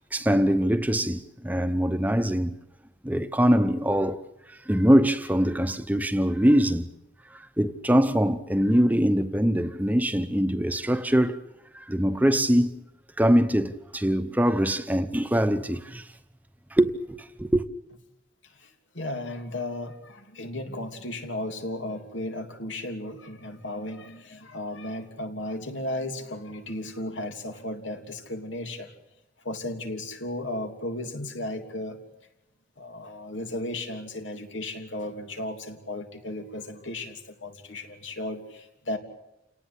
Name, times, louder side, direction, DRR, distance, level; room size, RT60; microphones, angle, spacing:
voice 1, 0.1-2.6 3.0-4.2 4.5-6.9 7.3-11.4 11.7-12.8 13.2-16.1 16.7-17.6, equal, 10° right, 0.9 m, -23 dB
voice 2, 18.5-28.9 29.4-32.0 32.8-39.0, left 1 dB, 85° left, 3.2 m, -35 dB
29.0 x 18.5 x 8.4 m
head